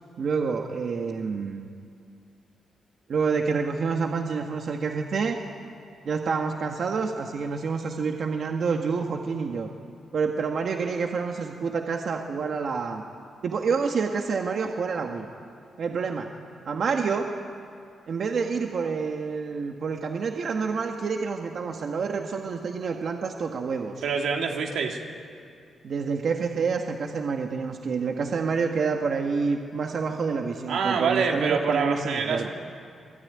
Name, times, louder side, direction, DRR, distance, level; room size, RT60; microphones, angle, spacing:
voice 1, 0.2-1.7 3.1-5.4 6.0-9.7 10.1-13.0 13.4-15.3 15.8-16.3 16.6-17.3 18.1-23.9 25.8-32.5, right 5 dB, 55° right, 3 dB, 1.6 m, -28 dB
voice 2, 24.0-25.0 30.7-32.5, right 5 dB, 90° right, 1 dB, 3.2 m, -26 dB
27.0 x 20.5 x 9.8 m, 2.3 s
wide cardioid pair, 140°, 0 cm